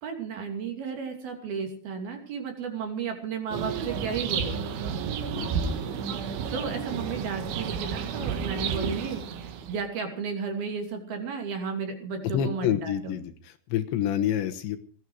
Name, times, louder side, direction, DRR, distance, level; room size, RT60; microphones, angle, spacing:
voice 1, 0.0-4.7 6.5-13.1, right 5 dB, 55° right, 4 dB, 4.4 m, -33 dB
sound 1, 3.5-9.8, right 6 dB, 75° right, 3.9 m, -31 dB
voice 2, 5.4-5.8 12.2-14.8, left 10 dB, 75° left, 7 dB, 3.2 m, -28 dB
19.5 x 14.5 x 4.9 m, 0.42 s
omnidirectional pair, 5.6 m